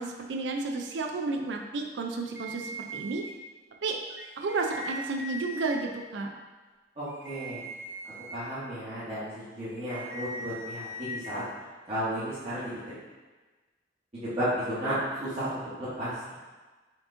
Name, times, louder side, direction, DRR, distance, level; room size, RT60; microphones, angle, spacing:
voice 1, 0.0-3.2 3.8-4.0 4.4-6.3, right 3 dB, 75° right, 2 dB, 0.4 m, -32 dB
sound 1, 2.4-3.3 4.1-5.8 7.1-8.4 9.7-11.3, right 1 dB, 15° right, 0.3 m, -40 dB
voice 2, 7.0-7.6 8.3-11.4 11.9-12.7 14.1-16.1, equal, 35° right, -14 dB, 1.2 m, -33 dB
4.4 x 2.9 x 3.7 m, 1.3 s
head